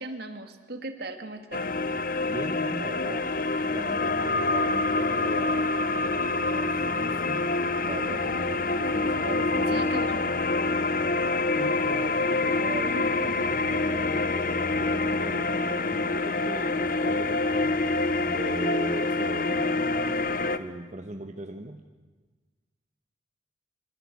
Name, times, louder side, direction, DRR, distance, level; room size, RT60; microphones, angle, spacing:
voice 1, 0.0-1.7 9.7-10.2, right 2 dB, 60° right, 7 dB, 2.3 m, -38 dB
sound 1, 1.5-20.6, left 3 dB, 50° left, 1.1 m, -26 dB
voice 2, 2.3-3.3 3.6-5.7 6.1-7.5 7.8-9.9 11.6-21.8, right 1 dB, 40° right, 5 dB, 1.2 m, -39 dB
25.5 x 24.5 x 8.5 m, 1.3 s
head